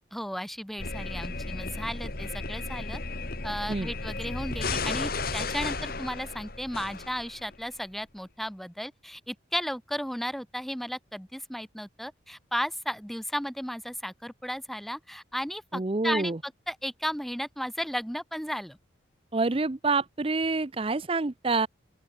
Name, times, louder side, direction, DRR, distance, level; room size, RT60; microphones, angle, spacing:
voice 1, 0.1-3.0 3.4-18.8, equal, ahead, 1.2 m, -34 dB
sound 1, 0.8-7.6, left 3 dB, 50° left, 2.4 m, -34 dB
voice 2, 15.7-16.4 19.3-21.7, right 3 dB, 30° right, 0.6 m, -27 dB
open air
head